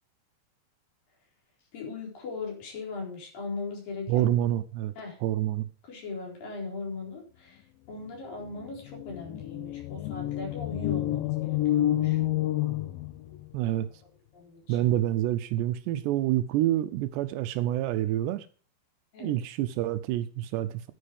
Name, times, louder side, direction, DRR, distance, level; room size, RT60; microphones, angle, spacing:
voice 1, 1.7-4.4 5.0-5.2 5.8-12.2 14.3-14.9 19.1-19.4, left 4 dB, 55° left, 5.8 m, -39 dB
voice 2, 4.1-4.9 5.2-5.7 13.5-13.9 14.7-18.5 19.2-20.8, right 13 dB, 80° right, 2.9 m, -27 dB
sound 1, 8.1-8.2 8.4-13.5, left 13 dB, 75° left, 2.2 m, -29 dB
11.0 x 9.8 x 5.1 m
omnidirectional pair, 5.0 m